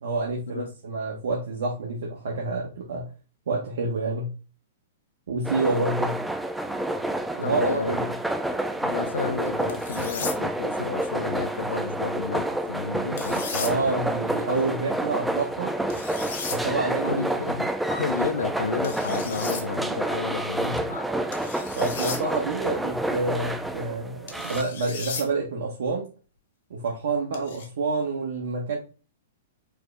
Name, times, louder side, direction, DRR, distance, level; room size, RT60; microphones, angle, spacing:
voice 1, 0.0-3.1 3.5-4.3 5.3-6.2 7.4-8.1 13.6-15.7 16.5-17.5 20.6-20.8 21.8-26.1 26.7-28.8, right 3 dB, 70° right, 0.9 m, -28 dB
sound 1, 5.4-24.6, right 1 dB, 5° right, 0.3 m, -29 dB
voice 2, 7.4-8.0 8.8-14.0 17.0-21.1 21.9-22.0, left 5 dB, 80° left, 0.4 m, -32 dB
sound 2, 9.7-10.4 13.2-13.7 15.9-16.6 18.8-19.6 21.3-22.2 24.3-25.3 27.3-27.7, left 6 dB, 65° left, 1.0 m, -35 dB
4.7 x 2.0 x 3.3 m
hypercardioid pair, 115°, 0 cm